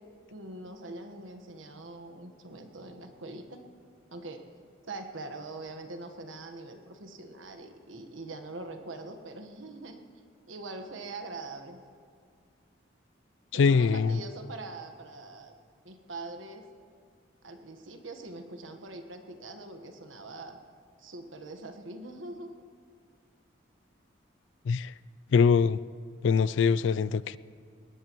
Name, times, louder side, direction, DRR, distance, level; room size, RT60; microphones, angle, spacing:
voice 1, 0.3-3.6 4.1-4.4 4.9-10.0 10.5-11.8 13.5-15.5 15.8-16.6 17.4-20.6 21.0-22.5, right 2 dB, 90° right, 6 dB, 1.3 m, -43 dB
voice 2, 13.5-14.2 24.7-24.9 25.3-25.8 26.2-27.4, left 5 dB, 75° left, 18 dB, 0.3 m, -23 dB
21.0 x 18.0 x 3.1 m, 2.1 s
head